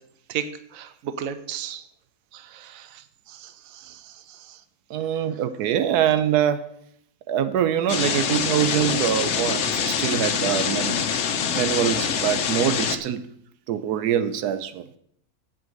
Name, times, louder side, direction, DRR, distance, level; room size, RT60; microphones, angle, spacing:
voice 1, 0.3-1.8 2.3-4.6 11.5-11.6, right 8 dB, 65° right, 1.1 m, -35 dB
voice 2, 4.9-6.7 7.3-11.0 11.5-13.2 13.7-14.8, right 10 dB, 85° right, 1.2 m, -24 dB
sound 1, 7.9-13.0, left 7 dB, 55° left, 1.0 m, -25 dB
8.4 x 7.9 x 6.4 m
omnidirectional pair, 1.6 m